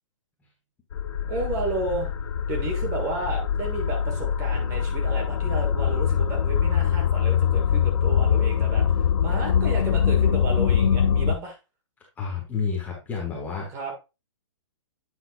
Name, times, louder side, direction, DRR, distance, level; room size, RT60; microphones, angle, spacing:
sound 1, 0.9-11.4, left 8 dB, 65° left, 0.8 m, -23 dB
voice 1, 1.2-2.1 2.5-11.6 13.7-13.9, right 2 dB, 20° right, 2 dB, 1.5 m, -32 dB
voice 2, 12.2-13.8, left 5 dB, 10° left, -2 dB, 1.2 m, -30 dB
8.4 x 5.6 x 2.5 m, 0.26 s
hypercardioid pair, 165°, 16 cm